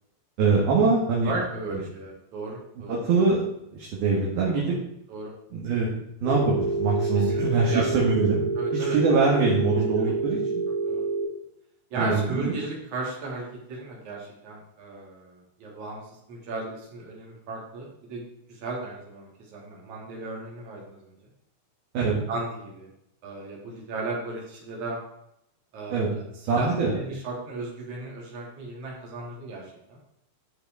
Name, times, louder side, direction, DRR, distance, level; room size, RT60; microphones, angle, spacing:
voice 1, 0.4-1.3 2.9-3.4 3.7-4.8 5.5-5.9 6.2-8.4 8.7-10.6 12.0-12.6 21.9-22.2 25.9-26.1 26.5-26.9, right 4 dB, 60° right, -3 dB, 3.3 m, -23 dB
voice 2, 1.2-3.0 4.5-4.8 5.1-5.3 7.1-7.9 8.6-9.0 10.0-10.3 10.9-11.0 11.9-16.0 16.3-18.2 18.5-21.2 22.0-22.9 23.2-25.0 25.7-30.0, right 3 dB, 40° right, -3 dB, 3.9 m, -35 dB
Telephone, 6.2-11.2, right 3 dB, 75° left, 6.7 m, -28 dB
12.0 x 6.6 x 4.6 m, 0.79 s
omnidirectional pair, 5.9 m